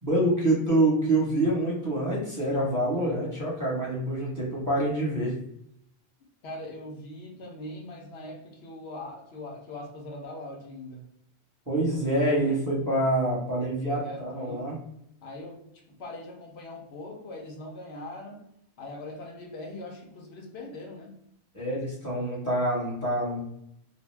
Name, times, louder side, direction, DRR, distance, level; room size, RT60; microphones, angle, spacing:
voice 1, 0.0-5.3 11.7-14.8 21.5-23.5, right 1 dB, 20° right, -6 dB, 0.9 m, -26 dB
voice 2, 6.4-11.1 13.9-14.7 15.2-18.4 18.8-21.2, left 1 dB, 75° left, 1 dB, 0.9 m, -41 dB
2.5 x 2.1 x 3.2 m, 0.74 s
omnidirectional pair, 1.1 m